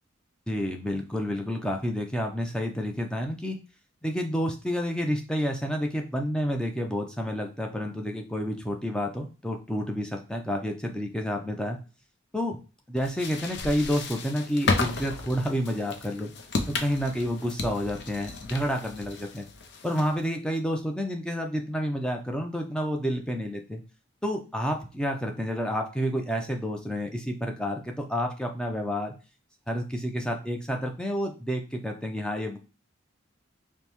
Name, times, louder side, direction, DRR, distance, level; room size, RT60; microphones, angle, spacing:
voice 1, 0.5-3.6 4.0-11.8 12.3-12.6 12.9-16.3 16.7-19.5 19.8-23.8 24.2-29.2 29.7-32.6, equal, 5° left, 3 dB, 0.4 m, -29 dB
sound 1, 13.0-20.3, left 3 dB, 55° left, 0.5 m, -33 dB
5.1 x 2.1 x 3.0 m, 0.33 s
head